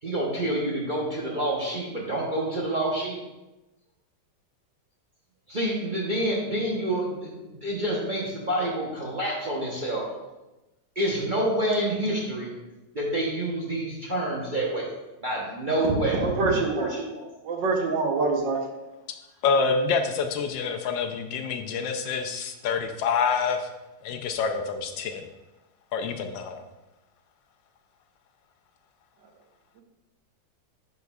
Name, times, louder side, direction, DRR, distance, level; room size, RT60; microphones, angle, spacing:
voice 1, 0.0-3.2 5.5-10.1 10.9-12.5 12.9-14.9 15.2-16.3 16.7-17.3, right 1 dB, 40° right, -5 dB, 0.7 m, -27 dB
voice 2, 16.2-16.9 17.4-18.6, right 4 dB, 70° right, 2 dB, 1.5 m, -25 dB
voice 3, 19.4-23.7 24.0-25.2 25.9-26.6, left 5 dB, 75° left, 6 dB, 1.2 m, -27 dB
10.5 x 4.6 x 2.3 m, 1.0 s
omnidirectional pair, 2.1 m